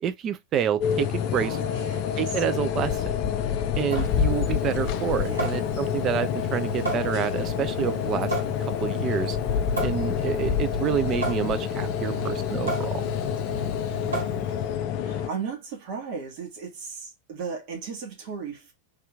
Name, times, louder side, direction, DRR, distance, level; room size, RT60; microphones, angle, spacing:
voice 1, 0.0-1.6 2.2-3.1 3.8-8.3 8.8-9.4 9.8-13.1, right 9 dB, 30° right, 0.5 m, -28 dB
sound 1, 0.8-15.3, left 9 dB, 40° left, 0.5 m, -28 dB
voice 2, 1.3-2.1 5.2-5.5 12.0-12.5 15.0-18.7, right 5 dB, 45° right, 1.4 m, -36 dB
Water tap faucet / Sink (filling or washing) / Drip, 3.8-14.8, right 1 dB, 80° right, 1.6 m, -34 dB
3.5 x 2.9 x 3.5 m
figure-of-eight pair, 90°, 0 cm